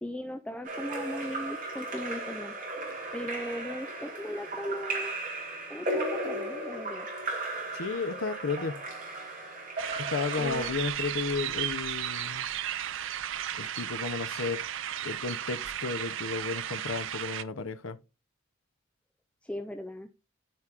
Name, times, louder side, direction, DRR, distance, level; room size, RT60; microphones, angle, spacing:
voice 1, 0.0-2.6 3.1-5.1 5.7-7.1 10.4-10.7 19.4-20.1, equal, 5° left, 0.4 m, -37 dB
Splash splatter / Drip / Trickle dribble, 0.6-10.7, right 2 dB, 40° right, 3.0 m, -36 dB
voice 2, 7.7-8.8 10.0-12.5 13.6-14.6 15.0-18.0, left 4 dB, 85° left, 0.7 m, -33 dB
sound 1, 9.8-17.4, right 10 dB, 70° right, 0.5 m, -34 dB
13.0 x 4.5 x 2.4 m
head